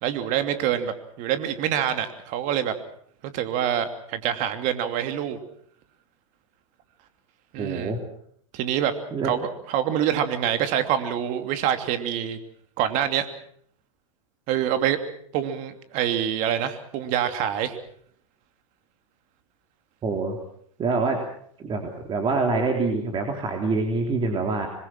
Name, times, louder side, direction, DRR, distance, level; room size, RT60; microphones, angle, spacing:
voice 1, 0.0-2.7 3.3-5.4 7.5-7.9 8.5-8.9 9.2-9.4 9.7-12.4 12.8-13.3 14.5-15.0 15.3-17.8, right 10 dB, 50° right, 8 dB, 2.8 m, -25 dB
voice 2, 7.6-8.0 9.1-9.4 20.0-20.4 20.8-21.2 21.6-24.7, right 3 dB, 30° right, 3 dB, 3.5 m, -25 dB
26.0 x 21.5 x 6.2 m, 0.63 s
hypercardioid pair, 100°, 17 cm